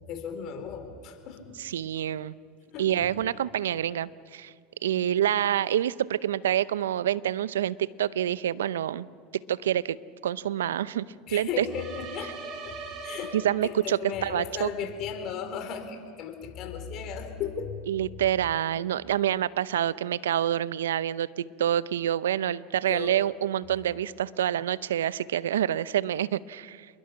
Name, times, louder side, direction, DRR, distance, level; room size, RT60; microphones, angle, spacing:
voice 1, 0.1-1.4 2.7-2.9 11.3-12.3 12.6-13.3 13.6-17.8 22.9-23.1, left 7 dB, 50° left, 6 dB, 4.0 m, -35 dB
voice 2, 1.6-2.3 2.8-4.5 4.8-9.1 9.5-10.0 10.2-11.7 13.3-14.7 17.9-26.9, right 11 dB, 80° right, 19 dB, 0.6 m, -27 dB
sound 1, 11.7-14.0, right 3 dB, 50° right, 4.7 m, -40 dB
28.0 x 21.5 x 5.9 m, 2.1 s
hypercardioid pair, 90°, 0 cm